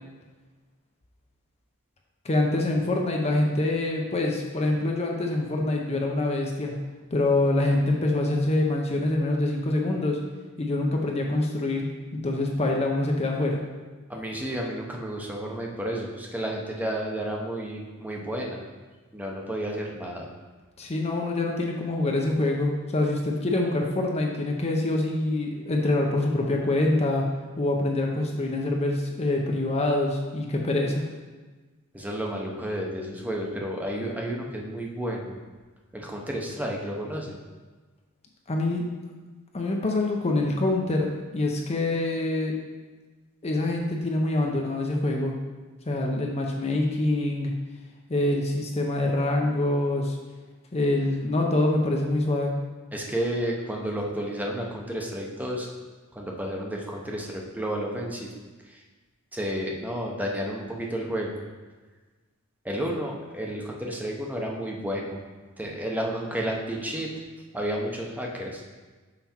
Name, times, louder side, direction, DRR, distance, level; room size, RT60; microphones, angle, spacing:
voice 1, 2.2-6.7 7.1-10.2 10.6-11.9 12.2-13.6 20.8-27.3 27.6-31.0 38.5-38.8 39.5-41.1 41.3-42.5 43.4-45.3 45.9-47.5 48.1-50.2 50.7-52.5, left 2 dB, 30° left, 0 dB, 0.7 m, -25 dB
voice 2, 14.1-18.6 19.1-20.3 31.9-35.4 35.9-37.4 52.9-55.7 56.1-58.3 58.7-58.8 59.3-61.4 62.6-65.2 65.6-67.1 67.5-68.6, equal, 5° right, -1 dB, 0.8 m, -31 dB
5.8 x 5.7 x 4.3 m, 1.3 s
head